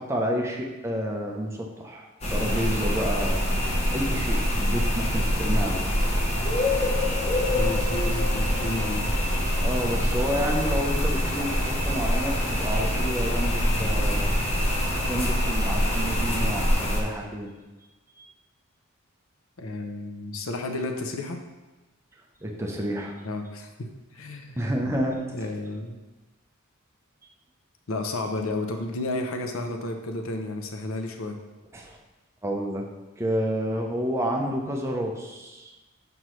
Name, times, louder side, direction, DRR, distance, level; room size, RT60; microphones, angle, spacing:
voice 1, 0.0-3.4 3.9-5.9 9.6-14.3 15.1-17.5 18.2-18.3 22.4-23.2 24.6-25.2 31.7-32.0 32.4-32.8 33.2-35.7, equal, 15° right, 0 dB, 0.7 m, -30 dB
sound 1, 2.2-17.0, equal, 30° left, 0.9 m, -25 dB
voice 2, 7.5-9.1 19.6-21.4 23.2-23.7 24.1-24.6 25.3-26.0 27.9-31.4, left 2 dB, 80° left, 5 dB, 0.7 m, -32 dB
6.0 x 5.3 x 3.1 m, 1.1 s
head